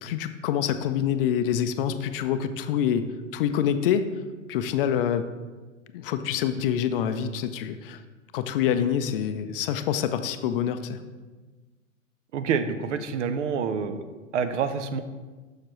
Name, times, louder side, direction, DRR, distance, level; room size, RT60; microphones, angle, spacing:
voice 1, 0.0-3.0 3.3-4.1 4.5-5.2 5.9-8.0 8.3-11.0, left 9 dB, 45° left, 10 dB, 0.4 m, -26 dB
voice 2, 12.3-14.0 14.3-15.0, right 6 dB, 60° right, 10 dB, 0.7 m, -27 dB
6.5 x 6.5 x 3.1 m, 1.3 s
hypercardioid pair, 105°, 40 cm